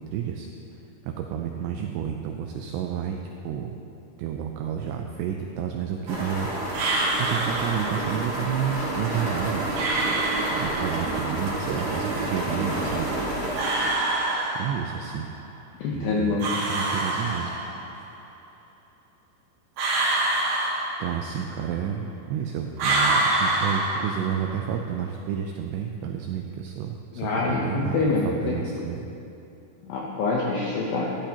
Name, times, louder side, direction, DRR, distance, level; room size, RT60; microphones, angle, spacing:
voice 1, 0.1-0.5 0.7-3.2 3.4-3.8 4.2-6.5 7.2-9.6 10.1-13.1 14.6-15.3 15.9-17.5 21.0-29.1, right 8 dB, 85° right, 3 dB, 2.4 m, -30 dB
sound 1, 6.1-14.0, right 1 dB, 50° right, 3.9 m, -29 dB
sound 2, 6.7-8.2 9.7-11.2 13.6-15.1 16.4-18.0 19.8-21.5 22.8-24.6, right 2 dB, 70° right, 3.8 m, -26 dB
voice 2, 15.8-16.5 27.2-28.6 29.9-31.2, left 3 dB, 80° left, -3 dB, 2.1 m, -25 dB
13.0 x 12.0 x 2.9 m, 2.8 s
omnidirectional pair, 5.5 m